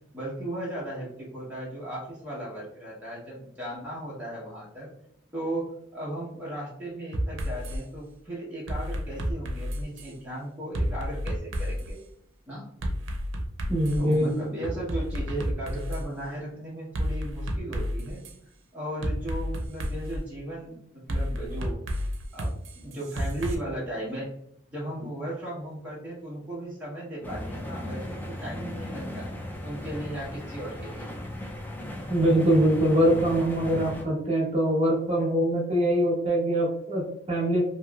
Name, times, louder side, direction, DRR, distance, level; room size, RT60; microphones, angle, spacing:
voice 1, 0.1-4.9 5.3-5.6 5.9-12.0 12.5-12.6 14.0-18.2 18.7-20.8 21.1-21.8 22.3-24.3 24.7-29.3 29.6-31.1, right 1 dB, 5° right, -8 dB, 0.9 m, -36 dB
sound 1, 7.1-7.8 8.7-10.1 10.7-11.9 12.8-14.1 14.6-16.0 16.9-18.3 19.0-20.2 21.1-23.5, equal, 85° right, 0.5 m, -30 dB
voice 2, 13.7-14.3 32.1-37.6, right 1 dB, 35° right, -4 dB, 1.0 m, -23 dB
sound 2, 27.2-34.0, left 1 dB, 10° left, 0.3 m, -37 dB
3.0 x 2.8 x 2.3 m, 0.73 s
head